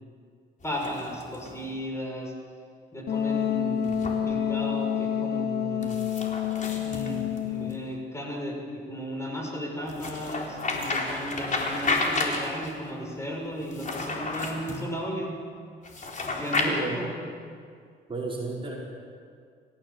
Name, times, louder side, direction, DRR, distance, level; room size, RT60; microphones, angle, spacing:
sound 1, 0.6-1.6 3.8-4.2 5.8-7.8 9.9-12.8 13.6-14.8 15.8-16.7, left 3 dB, 40° left, 4.3 m, -31 dB
voice 1, 0.6-2.3 2.9-6.0 6.8-15.4 16.2-17.1, equal, 15° left, -1 dB, 6.9 m, -35 dB
Wind instrument woodwind instrument, 3.1-7.9, left 8 dB, 55° left, 1.0 m, -28 dB
voice 2, 16.6-17.0 18.1-18.8, right 3 dB, 25° right, -3 dB, 4.8 m, -32 dB
28.5 x 15.5 x 7.6 m, 2.2 s
cardioid pair, 90°, 20 cm